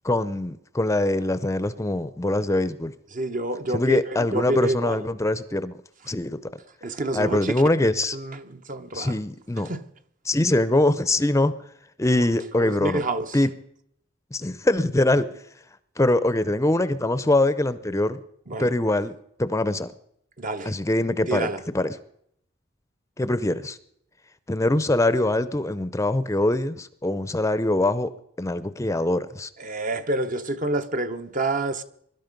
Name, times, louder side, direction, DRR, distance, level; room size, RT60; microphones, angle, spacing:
voice 1, 0.0-2.9 3.7-5.8 6.1-6.4 7.1-8.2 8.9-9.7 10.2-11.5 12.0-13.0 13.3-13.5 14.3-15.3 16.0-18.2 18.6-19.9 20.6-21.5 21.7-22.0 23.2-23.8 24.5-28.1 28.4-29.5, left 1 dB, 15° left, 0.6 m, -23 dB
voice 2, 3.1-5.0 6.8-7.6 8.1-9.2 9.7-9.8 12.6-13.4 18.5-18.7 20.4-20.7 21.3-21.6 29.6-31.8, right 2 dB, 45° right, 0.9 m, -28 dB
21.5 x 12.0 x 5.3 m
head